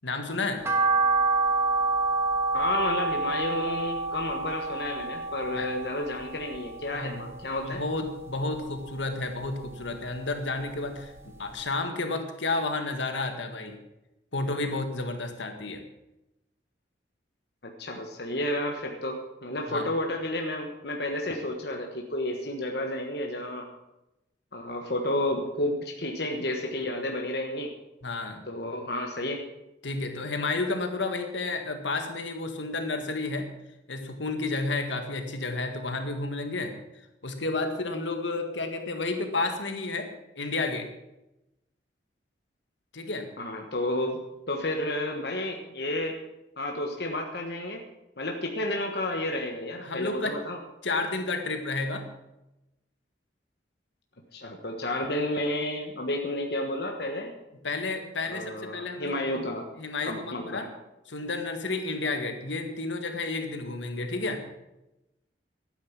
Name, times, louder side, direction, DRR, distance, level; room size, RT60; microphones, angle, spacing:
voice 1, 0.0-0.6 5.5-5.7 6.9-7.2 7.6-13.8 14.3-15.8 19.7-19.9 28.0-28.4 29.8-33.5 33.9-36.7 37.2-40.1 40.4-40.9 42.9-43.3 49.8-50.4 50.8-52.1 57.6-59.4 59.8-60.7 61.1-64.4, left 3 dB, 80° left, 6 dB, 1.8 m, -31 dB
sound 1, 0.6-7.0 7.3-8.5 8.8-10.2 10.6-10.7 11.2-11.3 11.5-11.6, right 3 dB, 15° right, 1.4 m, -28 dB
voice 2, 2.5-7.8 17.6-23.7 24.5-27.7 28.5-29.4 43.4-44.2 44.5-46.2 46.6-47.8 48.2-50.6 54.3-57.3 58.3-59.7 60.0-60.7, left 1 dB, 60° left, 2 dB, 1.4 m, -31 dB
12.0 x 9.5 x 7.3 m, 0.93 s
head